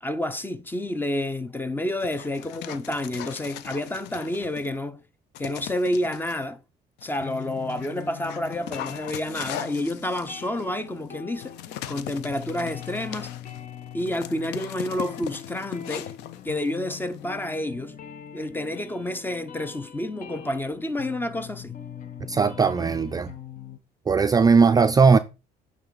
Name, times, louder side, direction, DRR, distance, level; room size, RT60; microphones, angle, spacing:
voice 1, 0.0-5.0 5.4-6.6 7.0-11.5 11.9-13.3 13.9-16.1 16.4-18.0 18.3-21.8, left 1 dB, 10° left, 0.7 m, -29 dB
Dog, 1.9-4.8 5.3-6.4 7.0-17.4, left 11 dB, 90° left, 0.6 m, -40 dB
sound 1, 7.2-23.8, left 9 dB, 50° left, 1.0 m, -42 dB
voice 2, 22.3-23.3 24.1-25.2, right 5 dB, 20° right, 0.4 m, -18 dB
9.0 x 3.7 x 4.0 m
cardioid pair, 110°, 17 cm